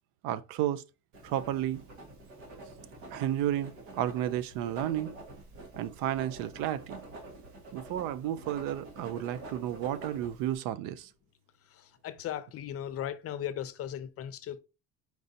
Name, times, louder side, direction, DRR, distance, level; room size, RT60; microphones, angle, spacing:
voice 1, 0.2-0.8 1.2-1.8 3.1-5.1 5.8-7.0 7.7-11.1, right 12 dB, 75° right, 0.5 m, -32 dB
Writing, 1.1-10.5, right 2 dB, 90° right, 1.5 m, -47 dB
voice 2, 12.0-14.6, left 10 dB, 45° left, 0.6 m, -37 dB
4.6 x 4.0 x 2.6 m
cardioid pair, 110°, 34 cm